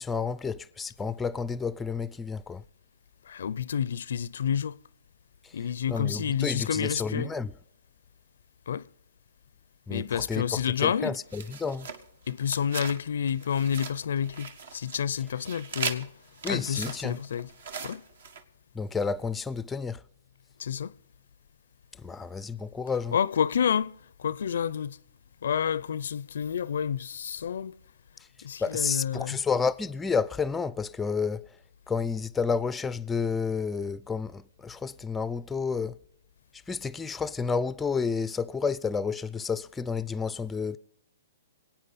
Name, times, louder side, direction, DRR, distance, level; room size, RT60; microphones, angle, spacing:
voice 1, 0.0-2.6 5.4-5.5 5.9-7.5 9.9-11.9 16.4-17.2 18.7-20.0 22.0-23.2 28.6-31.5 31.9-36.0 36.7-40.8, left 5 dB, 10° left, 0.4 m, -30 dB
voice 2, 3.2-4.8 5.5-7.3 8.7-8.9 9.9-11.2 12.3-16.1 16.5-17.5 17.8-18.0 20.6-21.0 23.1-25.0 25.4-27.8 28.4-29.4, left 8 dB, 70° left, 0.4 m, -29 dB
sound 1, 11.3-13.0 13.3-15.0 15.2-18.4, right 5 dB, 70° right, 1.4 m, -39 dB
26.0 x 8.9 x 4.1 m
hypercardioid pair, 140°, 0 cm